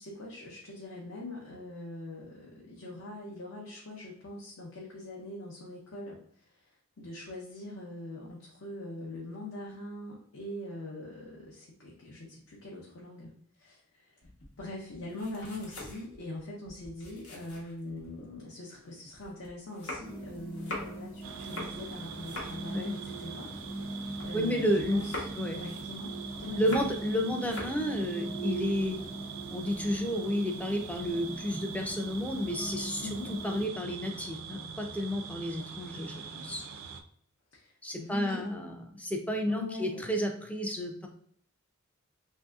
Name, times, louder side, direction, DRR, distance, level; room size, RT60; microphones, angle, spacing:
voice 1, 0.0-6.2 6.5-13.3 13.6-14.2 14.6-25.2 25.5-26.8 33.0-33.3 37.5-38.5 39.5-40.0, left 1 dB, 65° left, -4 dB, 0.7 m, -42 dB
sound 1, 14.2-18.3 18.7-24.5 24.8-27.1 27.4-27.9, left 2 dB, 85° left, 1.0 m, -44 dB
sound 2, 20.0-33.7, right 2 dB, 40° left, 1.0 m, -41 dB
sound 3, 21.2-37.0, right 6 dB, 70° right, 0.3 m, -44 dB
voice 2, 24.3-25.0 25.4-25.6 26.6-29.0 29.5-36.6 37.8-41.1, equal, 5° left, 3 dB, 0.3 m, -31 dB
3.2 x 2.7 x 2.3 m, 0.65 s
head